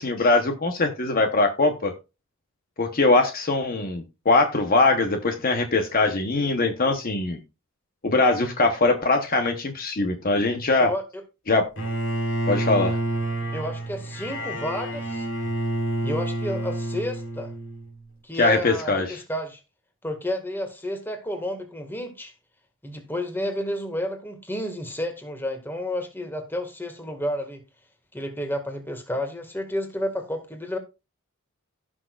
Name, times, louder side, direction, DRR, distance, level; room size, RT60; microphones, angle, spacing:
voice 1, 0.0-1.9 2.8-7.4 8.0-10.9 11.5-11.7 12.5-13.0 18.3-19.2, left 3 dB, 45° left, 1.0 m, -22 dB
Bowed string instrument, 11.8-17.9, right 1 dB, 60° left, 3.5 m, -28 dB
voice 2, 13.5-15.3 16.0-17.5 18.2-19.6 20.0-22.3 22.8-27.6 28.1-30.8, left 1 dB, 10° left, 1.8 m, -31 dB
16.5 x 6.2 x 2.4 m
head